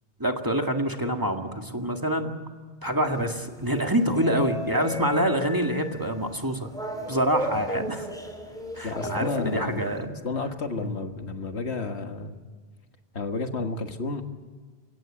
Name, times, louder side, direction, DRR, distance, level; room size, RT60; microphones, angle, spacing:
voice 1, 0.2-2.3 2.8-6.7 7.1-8.1 8.8-10.1 10.8-10.9, equal, 20° right, 3 dB, 2.0 m, -26 dB
sound 1, 3.0-10.0, equal, 5° left, 4.1 m, -36 dB
voice 2, 8.8-12.3 13.1-14.2, left 3 dB, 75° left, 6 dB, 1.8 m, -31 dB
30.0 x 17.0 x 8.8 m, 1.5 s
omnidirectional pair, 1.1 m